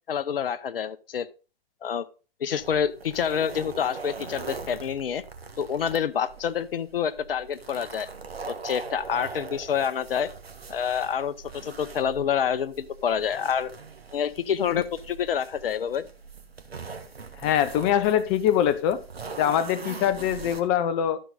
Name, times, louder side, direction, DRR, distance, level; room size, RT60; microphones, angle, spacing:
voice 1, 0.1-1.3 1.8-2.1 2.4-5.2 5.6-8.1 8.5-10.3 10.7-13.7 14.1-16.0, left 8 dB, 70° left, 0.9 m, -27 dB
sound 1, 2.6-20.6, right 4 dB, 90° right, 1.8 m, -41 dB
voice 2, 17.4-19.0 19.4-21.2, left 10 dB, 30° left, 1.0 m, -23 dB
13.0 x 6.1 x 4.0 m
hypercardioid pair, 130°, 30 cm